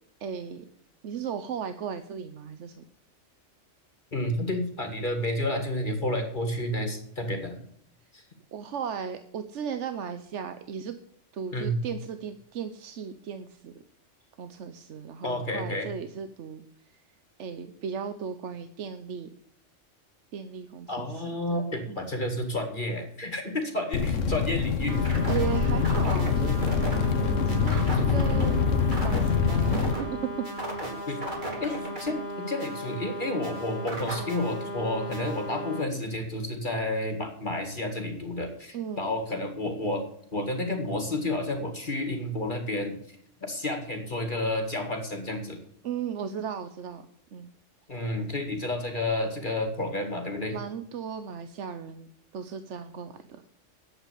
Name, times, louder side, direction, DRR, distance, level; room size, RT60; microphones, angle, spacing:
voice 1, 0.2-0.6 1.0-2.8 8.5-10.9 11.3-13.8 14.4-16.6 17.4-19.3 20.3-21.6 21.9-22.1 25.3-26.6 27.5-28.6 29.0-30.5 38.7-39.1 45.8-47.5 50.5-53.4, right 7 dB, 70° right, 10 dB, 1.1 m, -36 dB
voice 2, 4.1-7.6 8.1-8.2 11.5-11.8 15.2-15.9 20.9-25.0 27.9-28.1 31.1-31.2 31.6-40.0 40.3-45.6 47.9-50.6, left 1 dB, 40° left, 5 dB, 2.2 m, -30 dB
sound 1, 23.9-29.9, left 5 dB, 85° left, 1.4 m, -25 dB
sound 2, 24.9-35.8, right 1 dB, 40° right, 3.2 m, -35 dB
11.0 x 8.2 x 8.4 m, 0.70 s
omnidirectional pair, 1.3 m